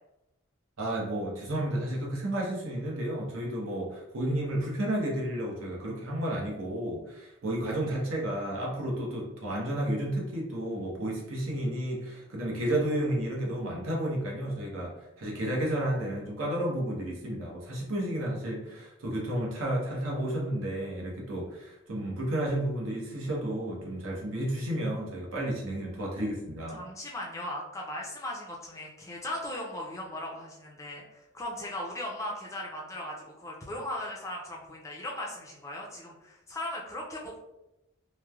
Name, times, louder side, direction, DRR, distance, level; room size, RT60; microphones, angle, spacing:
voice 1, 0.8-26.8, right 1 dB, 80° right, -3 dB, 0.8 m, -32 dB
voice 2, 26.7-37.4, left 1 dB, 15° left, -2 dB, 0.3 m, -38 dB
3.0 x 2.0 x 2.3 m, 0.94 s
head